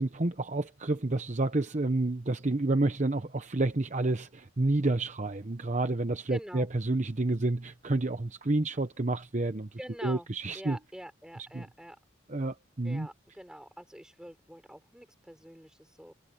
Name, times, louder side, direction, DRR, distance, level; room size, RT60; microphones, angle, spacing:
voice 1, 0.0-9.7 10.0-10.8 11.5-11.6 12.3-13.1, right 2 dB, 40° right, 0.9 m, -29 dB
voice 2, 6.3-6.7 9.8-10.3 10.5-12.0 12.8-16.1, equal, 5° right, 5.1 m, -45 dB
head